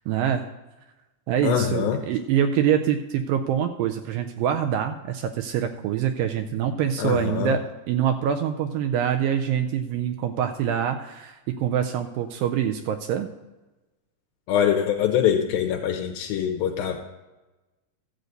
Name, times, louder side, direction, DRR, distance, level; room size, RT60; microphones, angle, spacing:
voice 1, 0.1-0.4 1.3-13.3, right 9 dB, 80° right, 6 dB, 2.1 m, -25 dB
voice 2, 1.4-2.0 7.0-7.6 14.5-17.1, left 9 dB, 80° left, 3 dB, 2.4 m, -24 dB
13.0 x 7.9 x 4.0 m, 1.1 s
omnidirectional pair, 4.4 m